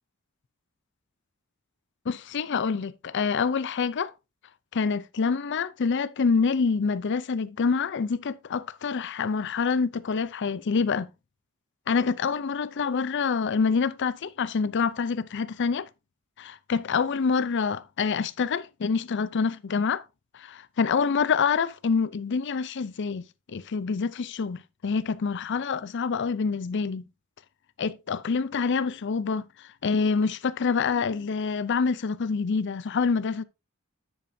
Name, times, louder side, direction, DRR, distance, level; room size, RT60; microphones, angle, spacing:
voice 1, 2.1-4.1 4.7-11.1 11.9-15.9 16.4-20.0 20.3-27.1 27.8-33.4, left 5 dB, 55° left, 0.5 m, -26 dB
9.4 x 8.4 x 2.7 m
head